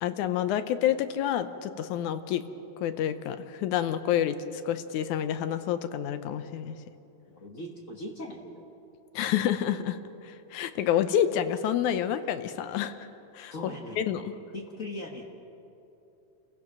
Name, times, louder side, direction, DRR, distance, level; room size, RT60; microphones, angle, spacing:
voice 1, 0.0-2.4 2.8-6.8 9.1-13.1 13.3-13.5 14.0-14.3, left 10 dB, 80° left, 11 dB, 2.2 m, -28 dB
voice 2, 7.3-8.7 13.5-14.0 14.5-15.2, left 1 dB, 50° left, 1 dB, 0.9 m, -39 dB
28.5 x 16.0 x 6.0 m, 2.9 s
omnidirectional pair, 3.5 m